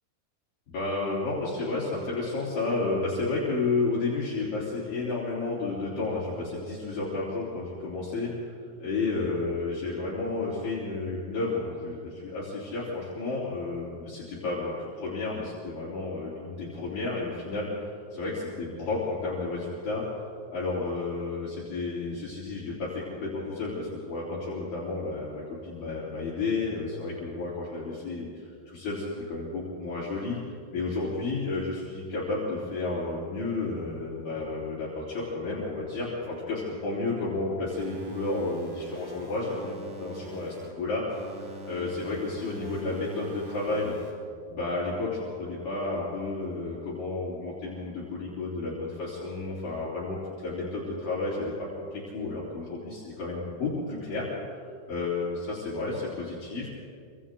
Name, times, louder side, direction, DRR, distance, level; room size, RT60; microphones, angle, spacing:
voice 1, 0.7-8.5 8.8-20.0 20.5-43.9 44.5-51.5 51.9-56.7, left 3 dB, 55° left, -8 dB, 5.1 m, -32 dB
sound 1, 37.7-40.7 41.1-44.1, right 1 dB, 85° right, 6.5 m, -44 dB
29.0 x 25.0 x 3.8 m, 2.4 s
omnidirectional pair, 4.8 m